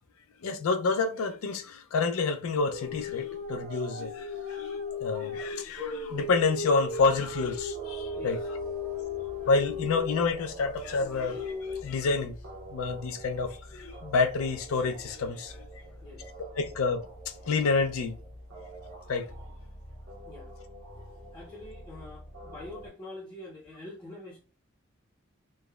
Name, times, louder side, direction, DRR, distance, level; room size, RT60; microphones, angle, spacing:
voice 1, 0.4-8.6 9.5-12.4 12.7-15.7 16.6-18.2 19.1-19.3, left 4 dB, 85° left, 0.4 m, -29 dB
sound 1, 2.5-11.8, left 3 dB, 50° right, 0.5 m, -36 dB
sound 2, 6.9-22.9, right 1 dB, 65° right, 0.8 m, -46 dB
voice 2, 16.0-16.3 20.2-20.5 21.3-24.4, left 1 dB, 20° left, 0.5 m, -45 dB
3.3 x 2.0 x 2.2 m
head